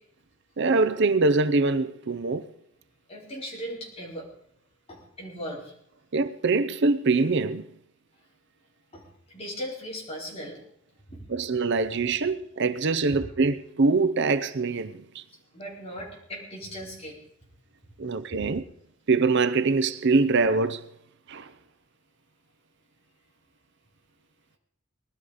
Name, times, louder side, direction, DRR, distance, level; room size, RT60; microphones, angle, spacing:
voice 1, 0.6-2.4 6.1-7.7 11.3-15.2 18.0-18.6 19.1-20.8 21.3-21.5, right 3 dB, 60° right, 0.7 m, -24 dB
voice 2, 3.1-4.3 4.9-5.7 8.9-9.0 9.3-10.6 11.1-11.2 15.5-17.2, equal, 30° left, 4.7 m, -38 dB
19.5 x 12.5 x 5.0 m
head